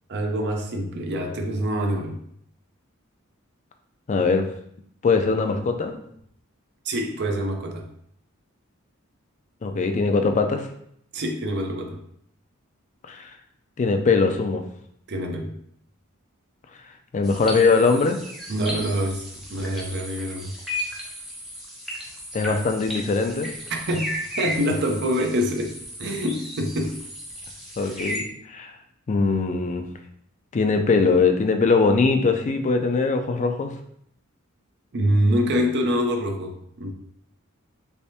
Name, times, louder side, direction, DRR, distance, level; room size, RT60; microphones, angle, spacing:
voice 1, 0.1-2.2 6.9-7.8 11.1-12.0 15.1-15.5 18.5-20.5 23.7-25.7 26.0-27.0 34.9-36.9, equal, 55° right, 3 dB, 0.6 m, -25 dB
voice 2, 4.1-4.5 5.0-6.0 9.6-10.7 13.1-13.3 13.8-14.6 17.1-18.2 22.3-23.5 27.8-28.2 28.5-28.7 29.1-29.8 30.5-33.7, left 4 dB, 35° left, 6 dB, 0.4 m, -21 dB
sound 1, 17.2-28.2, equal, ahead, 0.8 m, -35 dB
3.4 x 3.2 x 2.7 m, 0.69 s
head